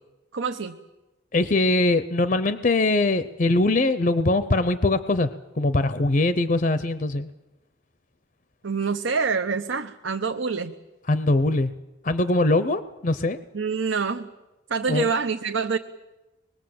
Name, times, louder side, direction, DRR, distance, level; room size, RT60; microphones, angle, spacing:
voice 1, 0.3-0.8 8.6-10.7 13.5-14.3 14.7-15.8, right 5 dB, 75° right, 5 dB, 0.9 m, -26 dB
voice 2, 1.3-5.3 5.6-7.3 11.1-11.7 12.0-13.4 14.9-15.1, left 2 dB, 40° left, 12 dB, 0.7 m, -22 dB
25.5 x 21.0 x 7.8 m, 1.1 s
head